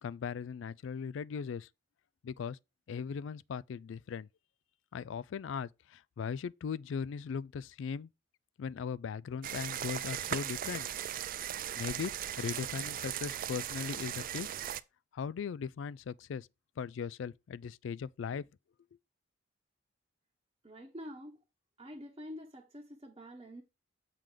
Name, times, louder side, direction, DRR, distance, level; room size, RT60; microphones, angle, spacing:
voice 1, 0.0-1.7 2.2-2.6 2.9-4.3 4.9-8.1 8.6-10.9 11.8-12.1 12.4-14.5 15.1-16.5 16.8-18.4, left 6 dB, 65° left, 0.3 m, -38 dB
sound 1, 9.4-14.8, right 10 dB, 45° right, 0.4 m, -38 dB
voice 2, 20.6-21.4 21.8-23.6, equal, 25° right, 1.0 m, -47 dB
7.5 x 3.7 x 4.9 m
head